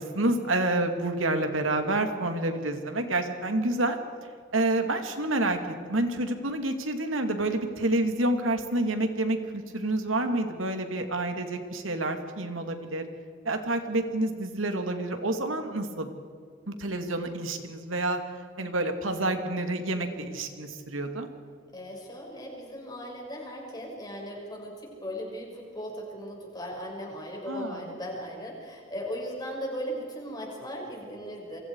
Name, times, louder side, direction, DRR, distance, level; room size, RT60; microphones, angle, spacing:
voice 1, 0.0-4.0 4.5-13.0 13.4-16.1 16.7-18.2 18.6-21.3 27.5-28.0, right 2 dB, 85° right, 6 dB, 2.6 m, -28 dB
voice 2, 21.7-31.6, equal, 20° left, -1 dB, 6.1 m, -38 dB
28.5 x 24.5 x 4.8 m, 2.2 s
head